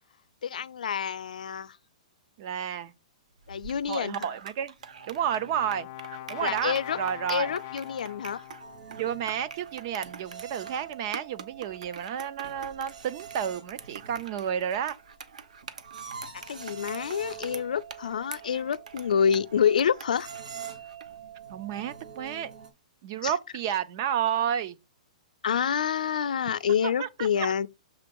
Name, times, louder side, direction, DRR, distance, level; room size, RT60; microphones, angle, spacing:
voice 1, 0.4-1.8 3.5-4.2 6.4-7.0 7.3-8.4 16.5-20.3 23.2-23.3 25.4-27.7, left 7 dB, 90° left, 0.5 m, -27 dB
voice 2, 2.4-2.9 3.9-4.7 5.1-5.9 6.3-7.5 9.0-15.0 21.5-22.5 23.0-24.8 27.0-27.5, right 9 dB, 30° right, 0.4 m, -31 dB
sound 1, 3.4-21.2, right 6 dB, 65° right, 0.9 m, -45 dB
Brass instrument, 4.8-9.0, left 13 dB, 30° left, 0.4 m, -43 dB
sound 2, 8.6-22.7, right 7 dB, 80° right, 2.6 m, -45 dB
6.9 x 3.8 x 5.2 m
hypercardioid pair, 180°, 4 cm